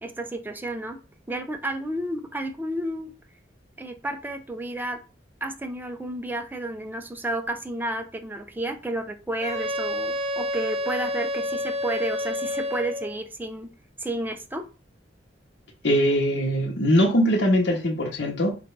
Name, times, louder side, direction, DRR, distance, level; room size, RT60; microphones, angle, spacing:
voice 1, 0.0-1.0 1.3-3.1 3.8-5.0 5.4-13.7 14.0-14.6, right 1 dB, 10° right, 6 dB, 0.5 m, -31 dB
Wind instrument woodwind instrument, 9.4-13.2, left 1 dB, 35° right, 0.8 m, -29 dB
voice 2, 15.8-18.6, equal, 65° left, -2 dB, 0.9 m, -21 dB
4.0 x 2.5 x 4.5 m, 0.32 s
head